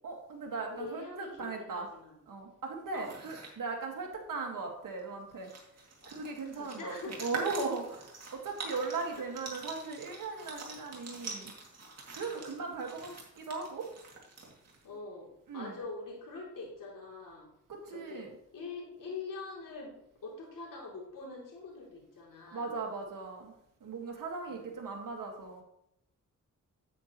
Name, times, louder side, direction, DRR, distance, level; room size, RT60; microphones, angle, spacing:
voice 1, 0.0-1.9 2.3-5.5 6.0-11.5 12.1-13.9 15.5-15.7 17.7-18.3 22.5-23.5 23.8-25.6, right 4 dB, 80° right, 1 dB, 1.8 m, -38 dB
voice 2, 0.7-2.2 2.9-3.1 6.0-6.1 6.5-7.3 12.3-12.5 14.8-17.5 17.9-22.7 24.5-24.7, left 3 dB, 80° left, -2 dB, 3.1 m, -44 dB
sound 1, 2.9-3.5 5.0-5.1 5.3-14.8, right 3 dB, 50° right, 2.4 m, -45 dB
9.3 x 8.6 x 3.0 m, 0.77 s
wide cardioid pair, 90°, 32 cm